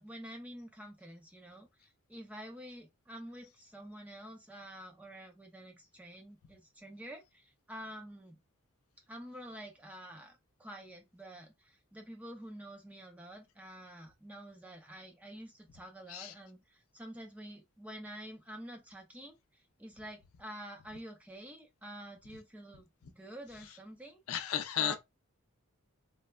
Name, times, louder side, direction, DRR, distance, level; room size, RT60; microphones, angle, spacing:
voice 1, 0.0-8.4 9.1-24.2 24.8-25.0, equal, 5° right, 0.4 m, -48 dB
voice 2, 24.3-25.0, left 10 dB, 75° left, 0.4 m, -34 dB
3.3 x 2.0 x 2.2 m
head